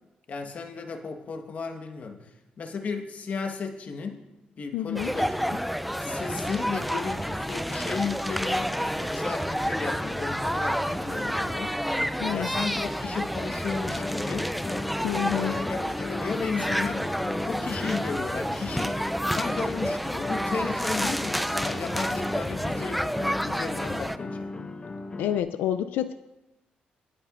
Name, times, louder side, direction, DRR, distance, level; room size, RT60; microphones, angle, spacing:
voice 1, 0.3-4.2 4.6-5.6 6.0-11.8 12.3-14.5 15.3-19.0 19.3-23.1 23.4-24.6, left 5 dB, 50° left, 4 dB, 1.3 m, -34 dB
voice 2, 4.7-5.1 12.2-12.5 15.0-15.5 25.2-26.1, left 11 dB, 90° left, 11 dB, 0.3 m, -28 dB
sound 1, 5.0-24.2, equal, ahead, 0.4 m, -29 dB
sound 2, 13.7-25.4, left 2 dB, 30° left, 1.0 m, -36 dB
22.0 x 7.6 x 2.5 m, 0.98 s
cardioid pair, 85°, 3 cm